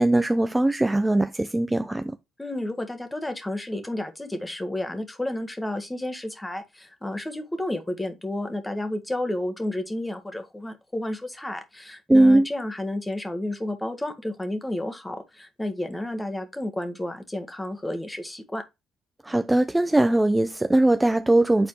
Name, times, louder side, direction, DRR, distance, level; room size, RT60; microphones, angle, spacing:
voice 1, 0.0-2.1 12.1-12.5 19.3-21.7, right 1 dB, 15° right, 0.5 m, -20 dB
voice 2, 2.4-18.6, left 1 dB, 15° left, 1.5 m, -31 dB
7.8 x 4.1 x 3.2 m
hypercardioid pair, 55°, 0 cm